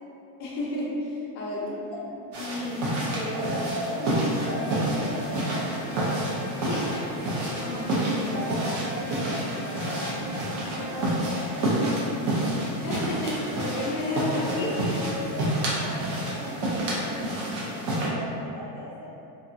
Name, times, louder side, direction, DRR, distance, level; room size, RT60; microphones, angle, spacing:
voice 1, 0.4-1.7 2.0-3.5 6.6-6.9 7.6-8.4 12.8-15.1, left 1 dB, 40° left, -5 dB, 0.4 m, -32 dB
sound 1, 2.3-18.1, right 1 dB, 40° right, 0.5 m, -29 dB
voice 2, 3.3-6.1 6.7-7.8 8.2-12.6 13.7-14.4 14.7-19.0, equal, 75° right, -11 dB, 0.8 m, -38 dB
Bowed string instrument, 4.3-11.2, left 2 dB, ahead, 0.7 m, -42 dB
2.6 x 2.2 x 2.4 m, 2.8 s
cardioid pair, 170°, 47 cm